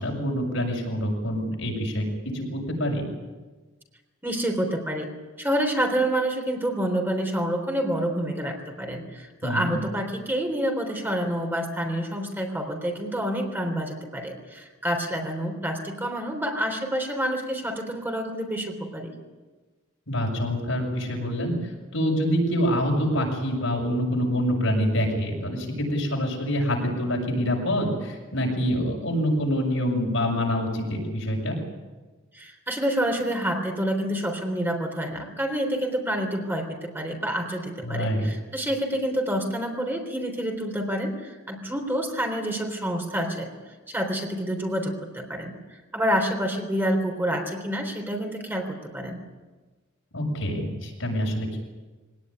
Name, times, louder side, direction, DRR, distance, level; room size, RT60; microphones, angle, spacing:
voice 1, 0.0-2.1 2.3-3.0 9.4-9.8 20.1-21.5 21.9-31.6 37.8-38.3 50.1-51.6, equal, 75° left, 0 dB, 7.0 m, -26 dB
voice 2, 4.2-5.1 5.4-19.1 32.3-43.5 43.9-45.5 45.9-49.2, right 1 dB, 10° right, 3 dB, 3.7 m, -28 dB
23.5 x 18.5 x 9.8 m, 1.3 s
head